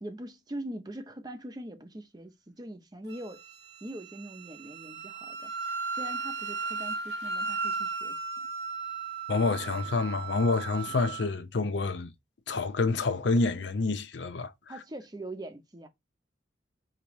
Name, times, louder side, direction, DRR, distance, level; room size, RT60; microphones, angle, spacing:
voice 1, 0.0-3.4 3.8-8.2 14.7-15.9, right 1 dB, 20° right, 0.6 m, -42 dB
Wind instrument woodwind instrument, 3.1-11.3, right 4 dB, 65° right, 0.9 m, -36 dB
voice 2, 9.3-12.1 12.5-14.5, left 3 dB, 70° left, 0.6 m, -28 dB
5.0 x 2.9 x 3.0 m
head